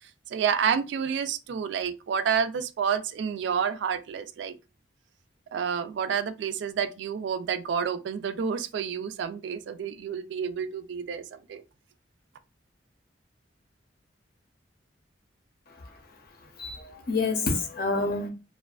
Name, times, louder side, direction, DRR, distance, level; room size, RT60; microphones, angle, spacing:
voice 1, 0.3-4.6 5.5-11.2 11.5-11.6, right 7 dB, 70° right, 0.3 m, -29 dB
voice 2, 16.6-18.3, left 3 dB, 55° left, 0.6 m, -28 dB
2.4 x 2.2 x 2.3 m
head